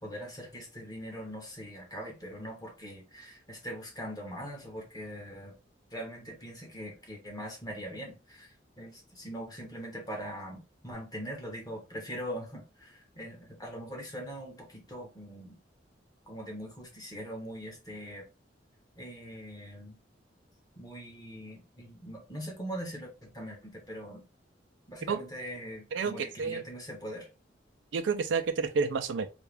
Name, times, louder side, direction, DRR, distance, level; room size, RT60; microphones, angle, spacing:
voice 1, 0.0-5.5 5.9-15.6 16.3-18.2 19.0-19.9 20.8-24.2 24.9-27.3, equal, 20° left, 1.3 m, -42 dB
voice 2, 25.9-26.6 27.9-29.3, right 5 dB, 80° right, 0.4 m, -30 dB
3.4 x 2.3 x 3.4 m
head